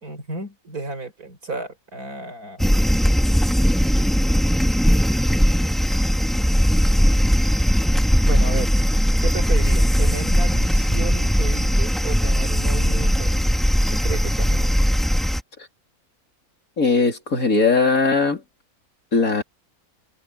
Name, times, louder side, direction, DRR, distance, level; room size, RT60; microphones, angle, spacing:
voice 1, 0.0-2.7 8.2-8.7 9.2-13.6 13.9-14.7, right 3 dB, 80° right, 5.2 m, -33 dB
sound 1, 2.6-15.4, equal, ahead, 2.4 m, -19 dB
voice 2, 16.8-18.4 19.1-19.4, left 4 dB, 70° left, 3.9 m, -19 dB
omnidirectional pair, 1.5 m